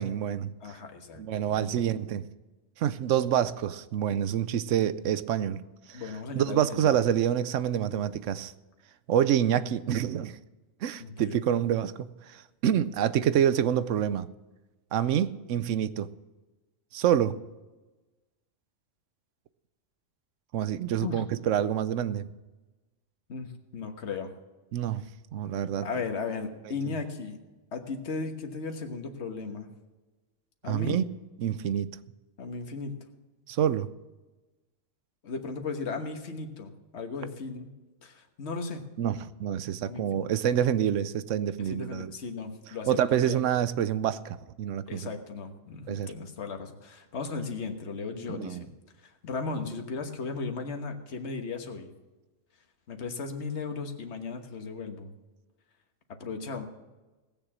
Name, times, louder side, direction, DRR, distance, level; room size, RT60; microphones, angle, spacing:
voice 1, 0.0-0.8 1.2-2.3 2.8-5.6 5.9-6.0 6.4-8.5 9.1-10.4 10.8-14.3 14.9-16.1 16.9-17.4 20.5-22.3 24.7-25.0 25.3-25.9 30.7-31.0 31.4-31.9 33.5-33.9 39.0-42.1 42.9-45.1 45.9-46.1 48.3-48.6, right 10 dB, 80° right, 15 dB, 1.0 m, -27 dB
voice 2, 0.6-1.2 1.5-1.8 5.9-7.1 11.0-11.4 21.0-21.2 23.3-24.3 25.8-27.4 27.7-29.7 30.6-31.0 32.4-32.9 35.2-37.7 38.0-38.8 39.8-40.3 41.6-43.4 44.8-48.7 49.0-51.9 52.9-55.1 56.1-56.7, left 4 dB, 60° left, 4 dB, 1.6 m, -36 dB
18.5 x 7.0 x 7.4 m, 1.2 s
omnidirectional pair, 1.3 m